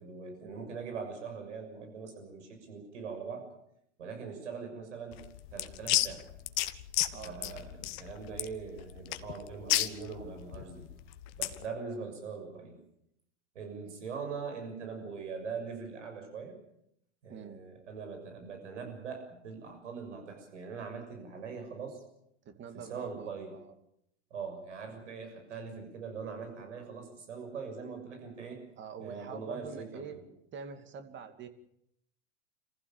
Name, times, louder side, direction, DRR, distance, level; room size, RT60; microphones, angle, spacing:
voice 1, 0.0-3.5 4.0-5.2 5.5-6.3 7.2-10.9 11.4-12.8 13.5-16.6 17.2-22.0 22.7-23.5 24.3-28.6 29.0-30.2, right 5 dB, 85° right, 5 dB, 6.8 m, -42 dB
sound 1, 5.1-11.6, left 17 dB, 55° left, 1.4 m, -33 dB
voice 2, 7.1-7.6 17.3-17.6 22.4-23.7 28.8-30.2 30.5-31.5, right 6 dB, 30° right, 8 dB, 2.6 m, -45 dB
26.5 x 15.5 x 7.4 m, 0.77 s
hypercardioid pair, 110°, 35 cm